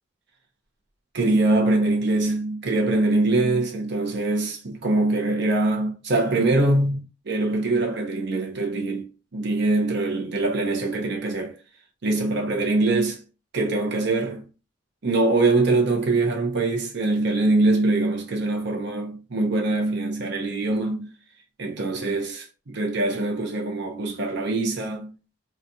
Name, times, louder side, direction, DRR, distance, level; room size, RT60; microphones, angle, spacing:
voice 1, 1.1-9.1 9.3-11.5 12.0-13.2 13.5-14.5 15.0-21.1 21.6-25.1, right 2 dB, 65° right, 0.7 m, -23 dB
4.1 x 2.2 x 2.7 m
head